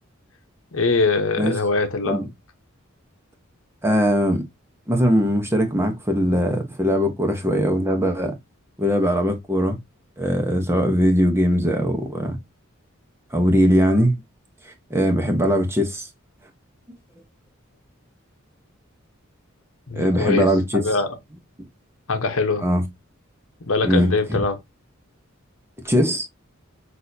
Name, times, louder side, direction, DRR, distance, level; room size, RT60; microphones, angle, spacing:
voice 1, 0.7-2.3 19.9-21.2 22.1-22.7 23.6-24.6, left 3 dB, 75° left, 1.0 m, -23 dB
voice 2, 3.8-4.4 4.9-8.3 8.8-9.8 10.2-12.4 13.3-14.1 14.6-16.1 19.9-20.8 22.6-22.8 23.8-24.4 25.8-26.2, equal, 10° right, 0.9 m, -20 dB
6.2 x 2.7 x 2.7 m
head